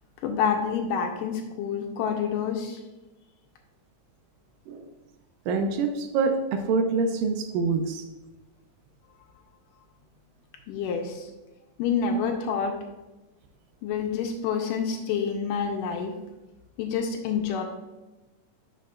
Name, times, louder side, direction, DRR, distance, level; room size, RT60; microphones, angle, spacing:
voice 1, 0.2-2.8 10.7-11.3 11.8-12.7 13.8-16.1 16.8-17.6, left 6 dB, 80° left, 3 dB, 2.2 m, -28 dB
voice 2, 5.5-8.0, right 4 dB, 85° right, 6 dB, 2.2 m, -26 dB
10.5 x 5.8 x 2.4 m, 1.1 s
omnidirectional pair, 3.9 m